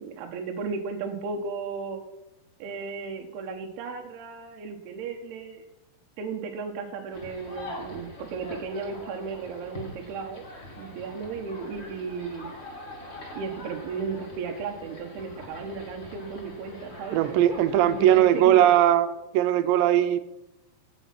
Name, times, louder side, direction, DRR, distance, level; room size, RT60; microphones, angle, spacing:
voice 1, 0.0-2.0 2.6-5.7 6.2-10.4 10.8-12.5 13.3-18.7, right 5 dB, 75° right, 2 dB, 2.9 m, -35 dB
sound 1, 7.1-18.4, left 1 dB, 25° left, 1.6 m, -43 dB
voice 2, 17.1-19.1 19.3-20.2, right 12 dB, 90° right, 12 dB, 3.1 m, -19 dB
16.5 x 7.3 x 6.0 m, 0.94 s
omnidirectional pair, 5.0 m